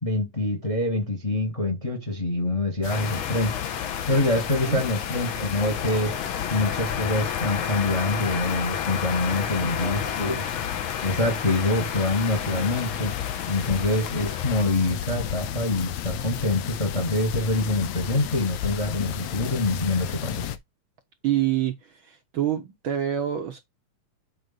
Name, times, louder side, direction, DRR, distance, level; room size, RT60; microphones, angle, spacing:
voice 1, 0.0-3.6 4.1-6.2 6.5-10.5 11.0-13.2 13.5-20.5, left 2 dB, 25° left, 0.7 m, -25 dB
sound 1, 2.8-20.6, left 11 dB, 80° left, 2.1 m, -33 dB
sound 2, 2.9-14.7, left 7 dB, 60° left, 1.5 m, -32 dB
voice 2, 9.8-10.4 21.2-23.6, right 11 dB, 65° right, 1.3 m, -27 dB
8.1 x 4.7 x 4.0 m
omnidirectional pair, 3.4 m